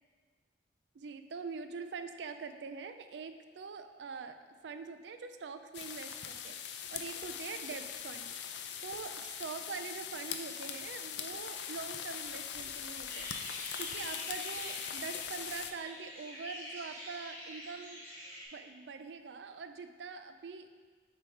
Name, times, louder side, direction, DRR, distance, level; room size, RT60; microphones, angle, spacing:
voice 1, 0.9-8.3 8.8-13.3 13.8-18.0 18.5-20.7, right 5 dB, 80° right, 9 dB, 0.4 m, -44 dB
sound 1, 5.7-15.7, left 8 dB, 75° left, 0.4 m, -41 dB
sound 2, 13.1-18.4, equal, 15° left, 1.9 m, -46 dB
7.5 x 3.4 x 5.0 m, 1.5 s
head